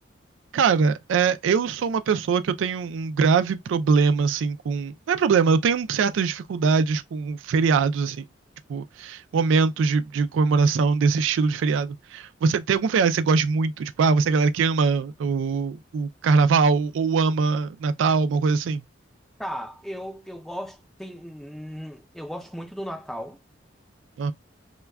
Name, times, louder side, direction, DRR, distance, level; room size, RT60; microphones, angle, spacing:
voice 1, 0.5-8.2 8.7-18.8 24.2-24.3, right 5 dB, 90° right, 0.3 m, -22 dB
voice 2, 19.4-23.4, equal, ahead, 0.5 m, -36 dB
2.2 x 2.2 x 3.3 m
head